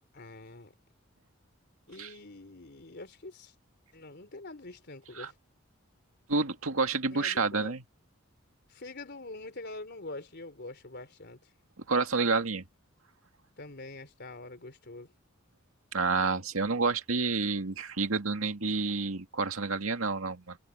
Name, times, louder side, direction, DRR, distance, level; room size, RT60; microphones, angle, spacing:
voice 1, 0.1-0.7 1.9-3.5 3.9-5.4 7.1-7.7 8.7-11.5 13.6-15.1, left 2 dB, 55° left, 3.6 m, -45 dB
voice 2, 6.3-7.8 11.9-12.6 15.9-20.6, right 4 dB, 85° right, 2.1 m, -29 dB
head